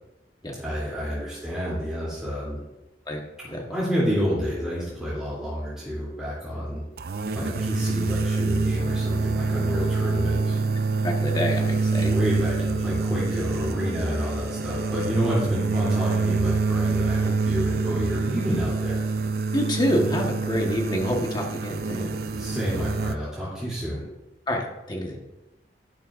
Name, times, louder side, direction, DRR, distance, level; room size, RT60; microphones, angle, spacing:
voice 1, 0.6-2.6 3.7-6.8 7.3-10.6 11.9-19.0 22.3-24.1, equal, 5° right, -9 dB, 2.9 m, -29 dB
sound 1, 7.0-23.2, right 4 dB, 60° right, 0.5 m, -26 dB
voice 2, 11.0-12.1 19.5-22.1 24.5-25.2, equal, 25° left, 0 dB, 1.3 m, -27 dB
11.5 x 11.5 x 2.5 m, 0.98 s
head